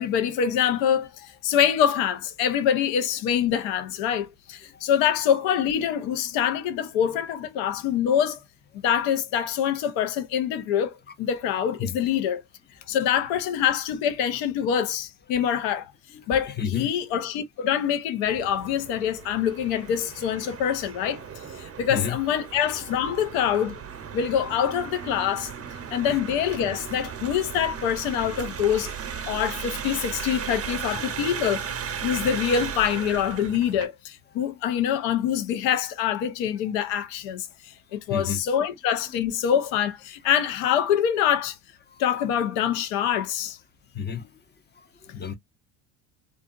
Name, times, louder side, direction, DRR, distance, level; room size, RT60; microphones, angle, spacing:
voice 1, 0.0-8.4 8.8-12.4 12.9-15.9 16.3-21.2 21.6-23.8 24.1-25.5 25.9-28.9 29.3-31.7 32.0-41.6 42.0-43.6, left 9 dB, 75° left, 0.8 m, -25 dB
voice 2, 16.1-16.9 21.9-22.2 22.8-22.9 26.1-26.2 38.1-38.4 39.1-39.2 43.9-44.3 45.1-45.3, left 7 dB, 20° left, 0.6 m, -31 dB
sound 1, 18.2-33.9, right 7 dB, 30° right, 0.7 m, -36 dB
2.6 x 2.5 x 2.4 m
supercardioid pair, 75°, 47 cm